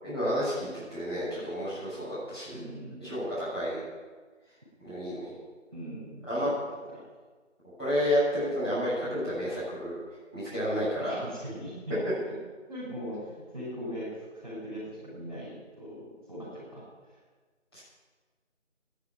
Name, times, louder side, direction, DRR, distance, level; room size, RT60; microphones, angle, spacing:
voice 1, 0.0-2.6 3.0-3.8 4.8-5.3 6.3-6.5 7.8-10.0 10.3-11.2 17.7-17.8, equal, 20° left, -13 dB, 6.8 m, -30 dB
voice 2, 2.5-3.2 5.7-6.5 6.9-7.0 11.0-12.0 12.7-16.9, equal, 30° right, -9 dB, 6.5 m, -40 dB
13.5 x 10.0 x 9.9 m, 1.4 s
figure-of-eight pair, 175°, 38 cm